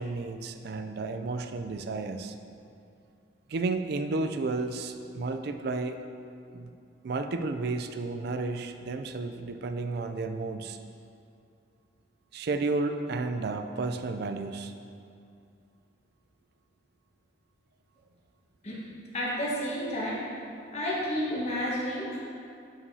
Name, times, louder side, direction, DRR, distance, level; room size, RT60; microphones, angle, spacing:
voice 1, 0.0-2.3 3.5-6.0 6.5-6.7 7.0-10.8 12.3-14.7, right 3 dB, 55° right, 7 dB, 0.4 m, -32 dB
voice 2, 19.1-20.2 20.7-22.2, equal, 35° left, -5 dB, 1.3 m, -31 dB
11.0 x 4.9 x 2.8 m, 2.5 s
head